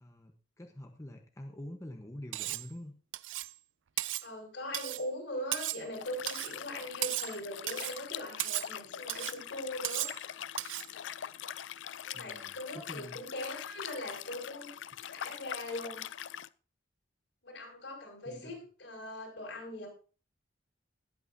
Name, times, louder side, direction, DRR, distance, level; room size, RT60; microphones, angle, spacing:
voice 1, 0.0-2.9 12.1-13.2 18.3-18.5, left 1 dB, 15° left, 3 dB, 1.0 m, -46 dB
Cutlery silverware, 2.3-2.7 3.1-3.5 4.0-4.3 4.7-5.1 5.5-5.9 6.3-6.5 7.0-7.4 7.7-8.0 8.4-8.7 9.1-9.4 9.8-10.2 10.6-10.9, right 16 dB, 85° right, 0.4 m, -35 dB
voice 2, 4.2-10.1 12.0-14.7 15.0-16.0 17.4-19.9, left 1 dB, 70° left, 0 dB, 6.4 m, -41 dB
Liquid, 5.9-16.5, left 10 dB, 85° left, 0.5 m, -43 dB
20.0 x 8.6 x 2.7 m, 0.36 s
head